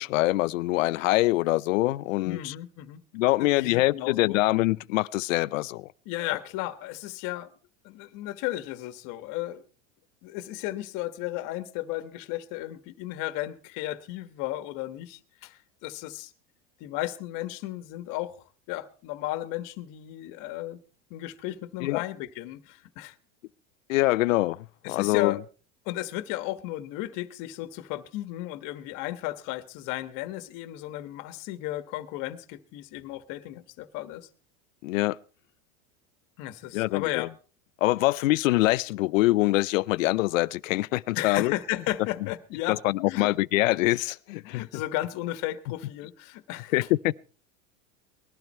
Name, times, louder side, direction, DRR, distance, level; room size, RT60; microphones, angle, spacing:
voice 1, 0.0-2.5 3.1-5.9 21.8-22.0 23.9-25.4 34.8-35.2 36.7-37.3 37.8-41.5 42.7-44.6 46.7-47.2, left 19 dB, 90° left, 0.6 m, -24 dB
voice 2, 2.2-3.0 3.4-4.4 6.0-7.5 7.8-9.6 10.2-16.3 16.8-18.4 18.7-20.8 21.1-23.1 24.8-25.4 25.8-34.3 36.4-37.3 41.1-42.8 43.0-43.3 44.4-46.9, left 15 dB, 55° left, 1.4 m, -34 dB
20.0 x 12.0 x 4.4 m
supercardioid pair, 125°, 38 cm